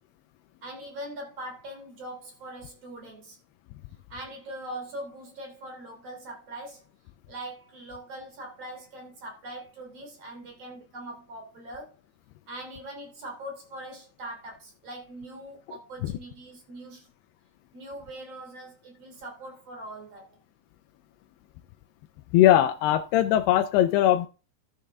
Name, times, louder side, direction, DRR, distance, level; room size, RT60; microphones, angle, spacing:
voice 1, 0.6-3.4 4.1-6.8 7.3-12.0 12.5-17.1 17.7-20.4, right 1 dB, 40° right, 3.6 m, -41 dB
voice 2, 22.3-24.3, left 12 dB, 80° left, 2.6 m, -20 dB
12.5 x 7.6 x 3.5 m
omnidirectional pair, 4.8 m